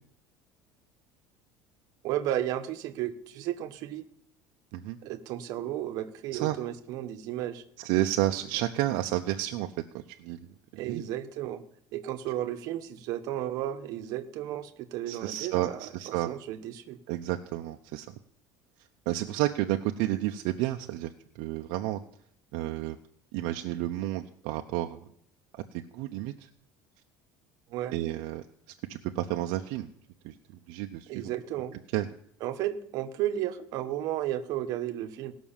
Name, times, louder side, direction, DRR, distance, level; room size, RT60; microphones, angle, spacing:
voice 1, 2.0-4.1 5.0-7.6 10.8-11.6 11.9-17.0 27.7-28.0 31.1-31.8 32.4-35.3, right 12 dB, 50° right, 7 dB, 1.0 m, -33 dB
voice 2, 7.8-9.7 9.9-11.1 15.1-16.3 17.1-18.1 19.1-21.1 21.3-22.0 22.5-23.0 23.3-25.0 25.5-26.3 27.9-28.4 28.9-29.9 30.2-30.3 30.7-31.3 31.9-32.1, right 15 dB, 65° right, 5 dB, 0.7 m, -31 dB
18.0 x 6.1 x 7.2 m, 0.69 s
cardioid pair, 180°, 8 cm